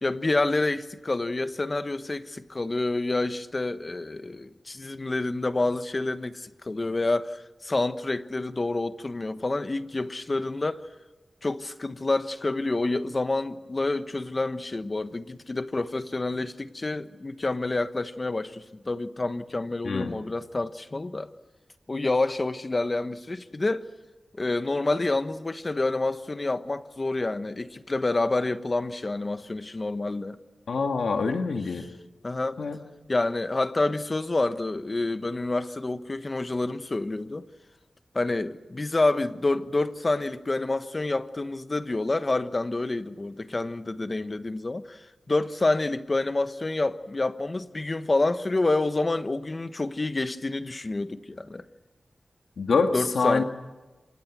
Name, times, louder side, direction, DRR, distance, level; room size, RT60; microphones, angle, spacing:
voice 1, 0.0-10.9 11.4-21.3 21.9-23.9 24.3-30.4 32.2-32.6 33.1-37.5 38.1-51.6 52.9-53.4, left 2 dB, 35° left, 1.2 m, -28 dB
voice 2, 19.8-20.2 30.7-31.8 32.6-32.8 52.6-53.4, left 4 dB, 85° left, 2.0 m, -25 dB
27.5 x 26.5 x 6.2 m
wide cardioid pair, 85°, 0 cm